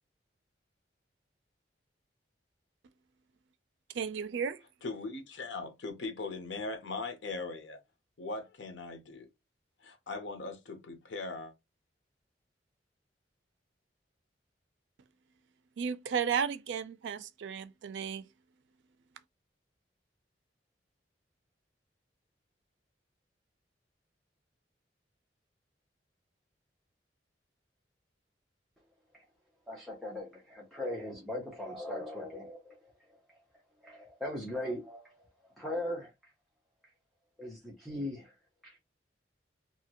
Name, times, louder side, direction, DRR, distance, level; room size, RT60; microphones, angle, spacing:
voice 1, 3.9-4.6 15.8-18.2, right 7 dB, 85° right, 0.4 m, -34 dB
voice 2, 4.8-7.8 8.2-9.3 9.8-11.5, left 3 dB, 85° left, 0.7 m, -39 dB
voice 3, 29.7-33.4 33.8-35.3 35.6-36.1 37.4-38.4 38.6-38.8, left 1 dB, ahead, 0.6 m, -39 dB
2.8 x 2.4 x 2.8 m
head